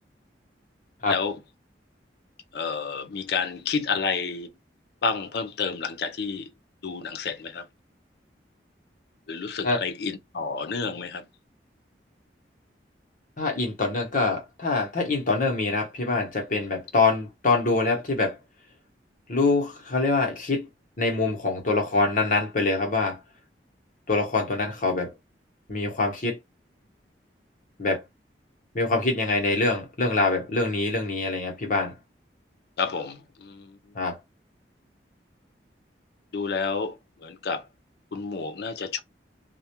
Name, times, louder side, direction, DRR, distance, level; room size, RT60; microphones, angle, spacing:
voice 1, 1.1-1.4 2.5-4.5 5.0-6.5 6.8-7.7 9.3-11.2 32.8-33.8 36.3-37.7 38.1-39.0, left 5 dB, 65° left, 0.5 m, -30 dB
voice 2, 13.4-18.3 19.3-20.7 21.0-23.2 24.1-25.1 25.7-26.4 27.8-28.0 28.7-31.9 33.9-34.1, left 3 dB, 45° left, 0.9 m, -24 dB
2.3 x 2.1 x 2.8 m
head